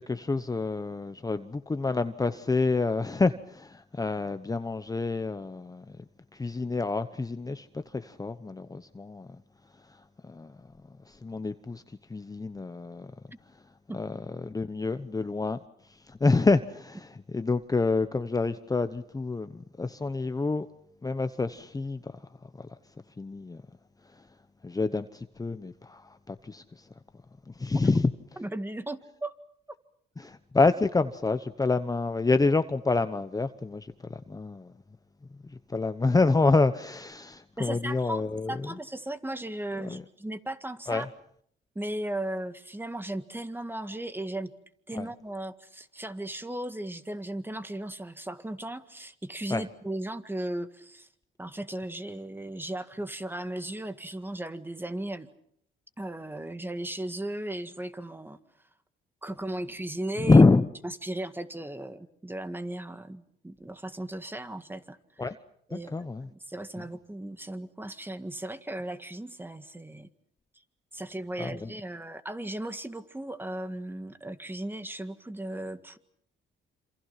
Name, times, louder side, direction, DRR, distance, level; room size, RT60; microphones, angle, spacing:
voice 1, 0.0-6.0 6.3-9.4 9.8-10.6 11.1-13.1 13.9-15.6 15.8-20.7 21.0-22.2 22.6-22.7 23.2-23.6 24.1-24.3 24.6-26.9 27.5-28.1 30.2-34.7 35.4-38.7 39.8-40.0 40.9-41.1 44.9-45.1 49.5-49.6 60.2-60.7 65.2-65.4 65.7-66.3 71.4-71.7, left 3 dB, 20° left, 1.0 m, -27 dB
voice 2, 28.4-29.3 37.6-38.2 38.5-41.1 41.8-44.5 44.9-51.1 51.4-55.3 56.0-58.4 59.2-60.5 60.8-65.0 65.7-70.1 70.9-76.0, right 1 dB, 10° right, 1.8 m, -36 dB
27.5 x 27.0 x 5.8 m
cardioid pair, 90°, 20 cm